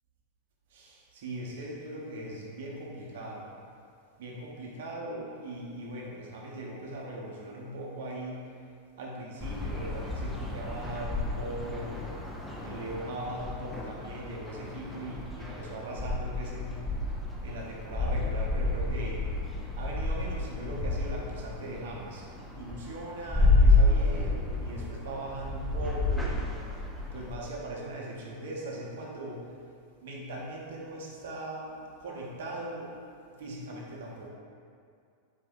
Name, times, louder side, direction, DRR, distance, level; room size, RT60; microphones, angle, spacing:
voice 1, 0.7-3.5 4.2-8.4 9.0-12.0 12.6-16.8 17.4-19.2 19.7-26.5 27.0-29.5 30.0-32.9 33.4-34.3, right 1 dB, 60° right, -3 dB, 0.8 m, -39 dB
sound 1, 9.4-27.4, left 2 dB, 5° left, 0.5 m, -30 dB
4.4 x 2.5 x 3.7 m, 2.3 s
figure-of-eight pair, 90°, 0 cm